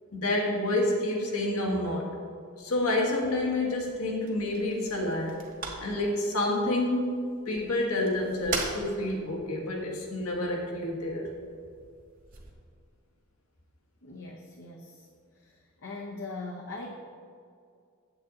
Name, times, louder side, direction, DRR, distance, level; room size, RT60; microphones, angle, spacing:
voice 1, 0.1-2.1 2.6-5.4 5.8-11.3, left 1 dB, 85° left, -1 dB, 1.7 m, -29 dB
sound 1, 2.6-12.5, right 3 dB, 40° right, 1.2 m, -42 dB
voice 2, 14.0-15.1 15.3-16.9, left 3 dB, 60° left, 0 dB, 0.8 m, -41 dB
8.3 x 8.0 x 3.8 m, 2.3 s
head